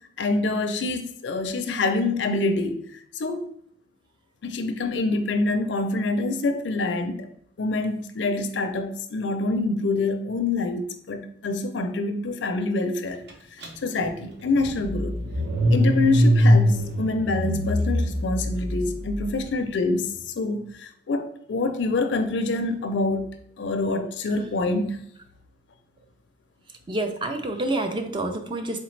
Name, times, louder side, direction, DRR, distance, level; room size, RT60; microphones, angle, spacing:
voice 1, 0.2-2.8 3.1-3.4 4.4-7.3 7.6-13.2 13.8-15.1 15.7-23.3 23.6-25.0, left 2 dB, 70° left, 0.4 m, -26 dB
Car / Engine starting, 13.6-13.7 14.0-19.2, equal, 65° right, 0.8 m, -22 dB
voice 2, 26.9-28.8, right 2 dB, 25° right, 0.4 m, -28 dB
4.0 x 3.1 x 3.2 m
head